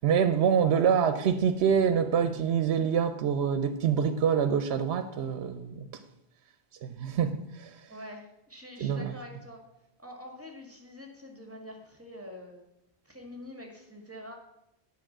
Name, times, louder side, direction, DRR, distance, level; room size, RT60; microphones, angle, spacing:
voice 1, 0.0-5.9 6.8-7.8 8.8-9.1, right 7 dB, 85° right, 0.9 m, -26 dB
voice 2, 7.9-9.6 10.0-12.7 13.0-14.4, left 1 dB, 10° right, 1.9 m, -45 dB
9.0 x 5.6 x 7.3 m
omnidirectional pair, 1.1 m